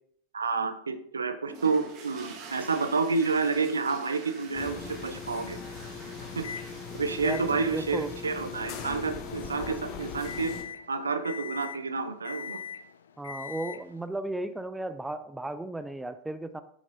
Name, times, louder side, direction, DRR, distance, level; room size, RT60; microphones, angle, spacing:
voice 1, 0.3-5.6 6.4-6.5 6.9-10.5 10.9-12.6, right 4 dB, 75° right, 10 dB, 0.6 m, -29 dB
sound 1, 1.5-9.9, right 4 dB, 40° right, 1.4 m, -48 dB
sound 2, 4.5-10.6, left 5 dB, 45° left, 0.9 m, -40 dB
Microwave oven, 6.4-6.7 7.2-14.1, left 7 dB, 65° left, 0.4 m, -43 dB
voice 2, 7.2-8.1 13.2-16.6, right 2 dB, 5° right, 11 dB, 0.4 m, -35 dB
9.1 x 6.1 x 2.7 m, 0.66 s
figure-of-eight pair, 90°, 0 cm